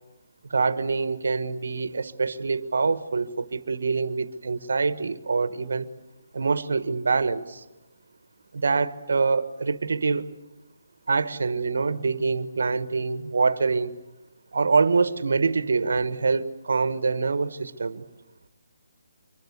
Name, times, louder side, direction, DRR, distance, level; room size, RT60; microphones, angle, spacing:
voice 1, 0.5-5.9 6.3-7.6 8.5-10.3 11.1-13.9 14.5-18.0, right 4 dB, 75° right, 1.4 m, -25 dB
25.5 x 23.0 x 8.1 m
hypercardioid pair, 155°, 0 cm